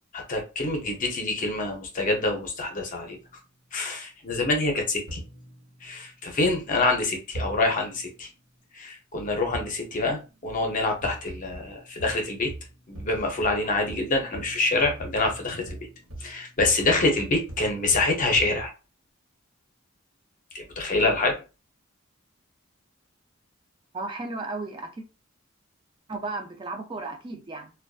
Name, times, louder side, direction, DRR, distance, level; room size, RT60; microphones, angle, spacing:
voice 1, 0.1-3.2 3.7-5.2 5.8-8.3 8.8-12.5 12.9-15.6 16.2-18.7 20.5-21.4, left 2 dB, 40° left, 0.6 m, -26 dB
sound 1, 2.9-3.4 5.1-6.4 7.3-8.2 9.5-10.4 11.0-18.7, right 1 dB, 75° right, 0.8 m, -41 dB
voice 2, 23.9-25.0 26.1-27.7, right 3 dB, 25° right, 0.4 m, -34 dB
2.4 x 2.2 x 2.3 m
head